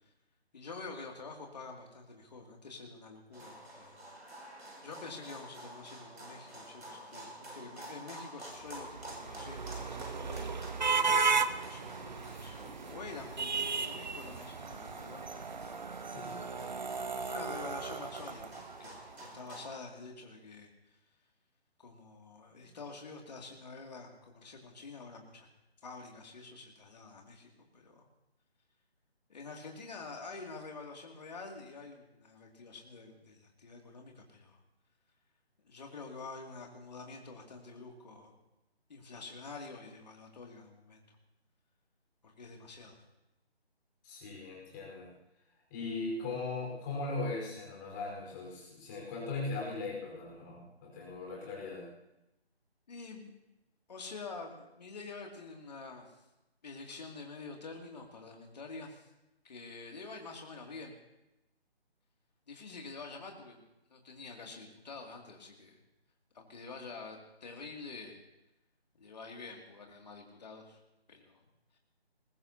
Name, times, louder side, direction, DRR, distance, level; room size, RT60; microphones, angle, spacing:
voice 1, 0.5-4.0 4.8-10.8 11.7-15.4 17.2-20.7 21.8-25.5 25.8-28.0 29.3-34.6 35.6-38.4 38.9-41.2 42.2-43.0 52.9-53.3 53.9-56.1 56.6-59.1 59.4-60.9 62.5-63.6 63.9-65.8 66.3-68.2 69.0-70.8 71.1-71.4, left 4 dB, 40° left, 1 dB, 2.6 m, -47 dB
sound 1, 3.3-19.8, right 1 dB, 85° right, 6.5 m, -50 dB
sound 2, 8.7-19.0, right 4 dB, 45° right, 0.6 m, -35 dB
voice 2, 16.1-16.7 44.0-45.1 45.7-51.8, left 3 dB, 20° left, -3 dB, 4.6 m, -39 dB
21.0 x 20.5 x 2.9 m, 0.91 s
figure-of-eight pair, 160°, 32 cm